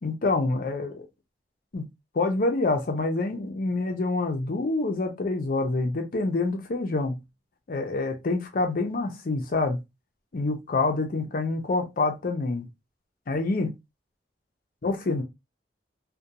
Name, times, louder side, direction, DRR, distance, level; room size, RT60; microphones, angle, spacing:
voice 1, 0.0-1.1 1.7-1.9 2.1-7.2 7.7-9.8 10.3-12.7 13.3-13.7 14.8-15.2, left 3 dB, 50° left, 0.5 m, -26 dB
2.4 x 2.2 x 2.8 m
head